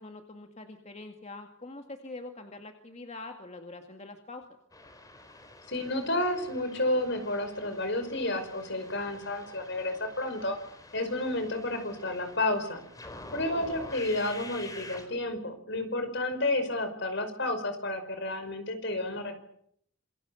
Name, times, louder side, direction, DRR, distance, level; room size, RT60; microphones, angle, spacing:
voice 1, 0.0-4.5 13.3-13.7, left 2 dB, 35° left, 4 dB, 2.1 m, -44 dB
sound 1, 4.7-15.1, left 2 dB, 20° left, 4.2 m, -48 dB
voice 2, 5.7-10.6 10.9-12.8 13.3-19.4, left 1 dB, 60° left, 8 dB, 5.4 m, -31 dB
27.5 x 22.0 x 7.2 m, 0.69 s
head